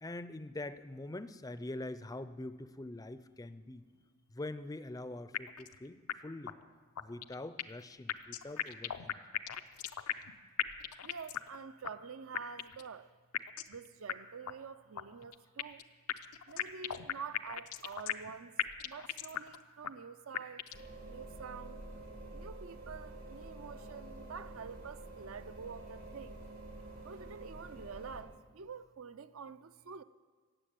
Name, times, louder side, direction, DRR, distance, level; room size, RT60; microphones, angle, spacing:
voice 1, 0.0-3.8 4.3-6.6 7.0-9.2, left 2 dB, 15° left, 0.5 m, -44 dB
voice 2, 3.7-4.1 11.0-13.1 13.7-15.8 16.5-18.5 18.8-20.7 21.0-21.8 22.3-26.4 27.0-30.0, right 6 dB, 65° right, 0.5 m, -47 dB
sound 1, 5.3-5.8 6.1-6.2 6.5-6.6 7.0-7.8 8.1-10.3 10.6-11.6 11.8-11.9 12.3-12.9 13.3-13.8 14.1-14.2 14.5-14.6 15.0-15.8 16.1-18.3 18.6-19.6 19.8-19.9 20.3-20.9, left 10 dB, 85° left, 0.6 m, -37 dB
sound 2, 20.7-28.2, right 2 dB, 85° right, 3.3 m, -48 dB
16.0 x 7.5 x 9.2 m
head